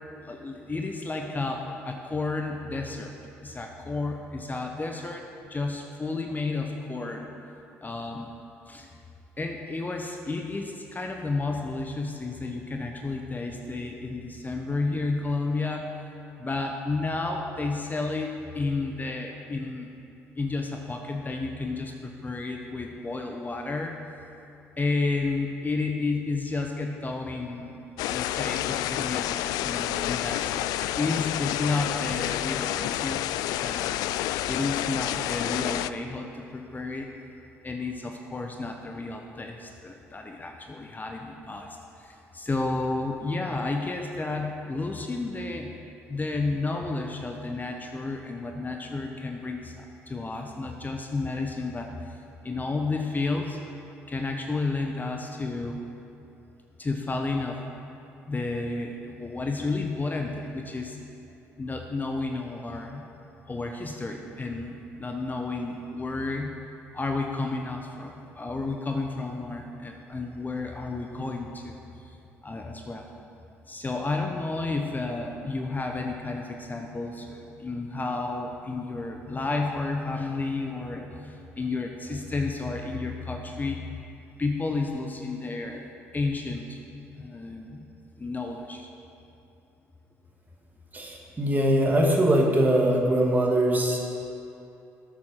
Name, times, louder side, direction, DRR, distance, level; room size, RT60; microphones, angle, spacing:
voice 1, 0.2-7.3 7.8-8.3 8.7-9.0 9.4-15.9 16.4-19.9 20.4-24.0 24.8-27.8 28.1-33.2 33.6-33.8 34.4-37.1 37.6-45.8 46.1-53.6 54.1-55.8 56.8-57.6 58.3-61.0 61.6-63.1 63.5-66.6 66.9-72.2 72.4-73.1 73.7-83.9 84.4-85.8 86.1-86.8 87.2-88.9, left 3 dB, 25° left, 2 dB, 1.1 m, -31 dB
sound 1, 28.0-35.9, left 13 dB, 70° left, 0.3 m, -29 dB
voice 2, 90.9-94.1, right 1 dB, 25° right, -1 dB, 2.5 m, -22 dB
13.0 x 7.7 x 5.9 m, 2.8 s
hypercardioid pair, 55°, 7 cm